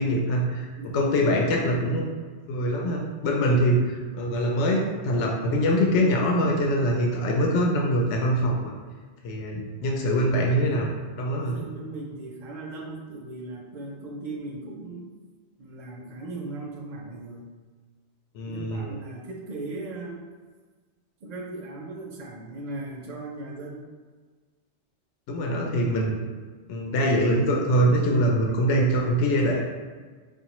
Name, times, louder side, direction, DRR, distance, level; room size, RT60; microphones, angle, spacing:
voice 1, 0.0-2.0 2.5-8.7 9.2-10.9 11.2-11.5 18.3-19.0 25.3-26.2 26.7-29.6, equal, 85° left, -1 dB, 0.9 m, -23 dB
voice 2, 0.8-1.1 11.4-15.1 15.6-17.5 18.5-20.2 21.2-23.9, right 2 dB, 55° right, -1 dB, 0.5 m, -38 dB
4.7 x 2.4 x 2.9 m, 1.5 s
omnidirectional pair, 1.2 m